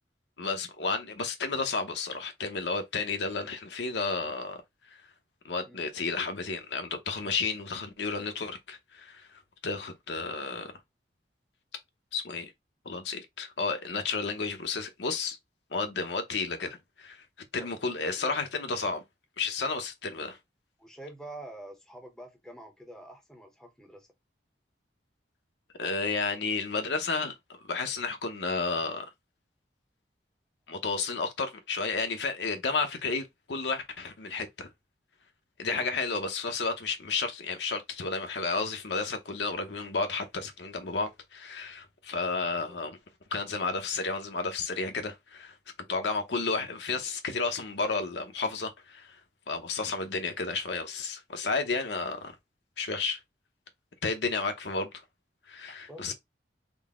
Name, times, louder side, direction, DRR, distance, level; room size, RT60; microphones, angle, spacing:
voice 1, 0.4-4.6 4.9-5.0 5.4-10.8 12.1-12.5 12.8-15.4 15.7-17.2 17.5-19.0 19.4-20.4 25.8-27.4 27.6-29.1 30.7-34.7 35.6-43.0 43.3-45.5 45.9-49.2 49.5-52.3 52.8-53.2 54.0-54.9 55.5-56.1, left 4 dB, 75° left, 0.7 m, -32 dB
voice 2, 20.8-24.1 35.7-35.9 42.5-42.8 45.8-46.1 55.9-56.1, right 1 dB, 5° left, 0.6 m, -46 dB
3.8 x 2.1 x 3.5 m
head